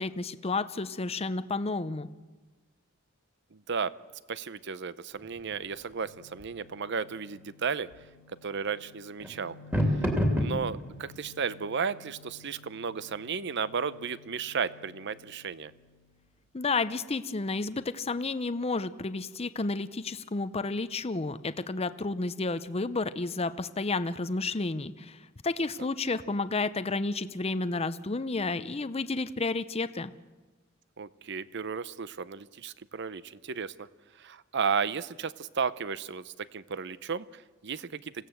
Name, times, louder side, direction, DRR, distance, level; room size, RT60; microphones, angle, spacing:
voice 1, 0.0-2.1 16.5-30.1, left 3 dB, 30° left, 12 dB, 0.7 m, -31 dB
voice 2, 3.5-3.9 4.3-7.9 8.4-9.5 9.9-15.7 31.0-33.9 34.2-38.3, right 6 dB, 60° right, 16 dB, 0.7 m, -34 dB
sound 1, 5.2-16.0, equal, 10° right, 2.7 m, -36 dB
26.5 x 16.5 x 7.9 m, 1.2 s
head